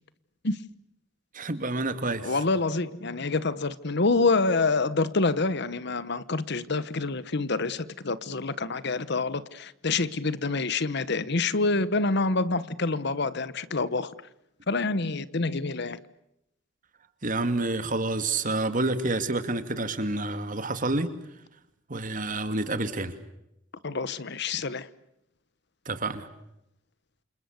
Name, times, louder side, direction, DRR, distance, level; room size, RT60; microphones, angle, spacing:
voice 1, 1.3-2.3 17.2-21.1 21.9-23.1 25.9-26.3, right 2 dB, 45° right, 2.4 m, -28 dB
voice 2, 2.2-14.1 14.7-16.0 23.8-24.9, left 3 dB, 60° left, 1.1 m, -27 dB
29.0 x 28.0 x 6.6 m
head